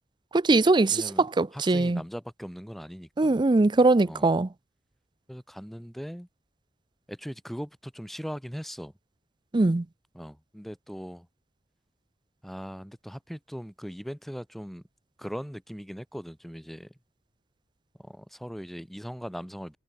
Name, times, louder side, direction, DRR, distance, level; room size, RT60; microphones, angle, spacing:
voice 1, 0.3-2.0 3.2-4.5 9.5-9.8, right 2 dB, 25° right, 0.5 m, -21 dB
voice 2, 0.9-1.3 1.5-3.4 4.0-4.3 5.3-6.3 7.1-8.9 10.1-11.3 12.4-14.8 15.2-16.9 18.0-19.8, equal, ahead, 3.8 m, -39 dB
head